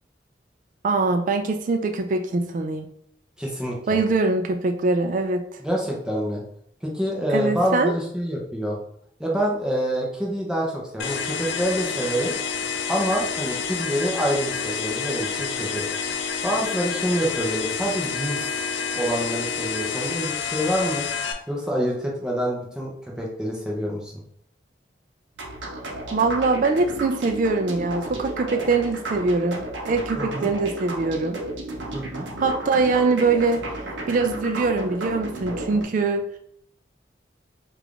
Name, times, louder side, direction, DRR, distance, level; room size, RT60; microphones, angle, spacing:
voice 1, 0.8-2.9 3.9-5.5 7.3-7.9 26.1-31.4 32.4-33.6 34.1-36.2, right 3 dB, 45° right, 5 dB, 0.3 m, -23 dB
voice 2, 3.4-4.0 5.6-6.4 6.8-8.8 9.2-12.3 12.9-15.8 16.4-18.4 18.9-21.1 21.5-24.1 30.2-30.5 31.9-32.3, equal, 5° right, -3 dB, 0.7 m, -26 dB
sound 1, 11.0-21.3, left 6 dB, 85° left, 0.4 m, -29 dB
sound 2, 25.4-35.8, right 2 dB, 90° right, 0.7 m, -33 dB
3.5 x 2.5 x 3.3 m, 0.68 s
head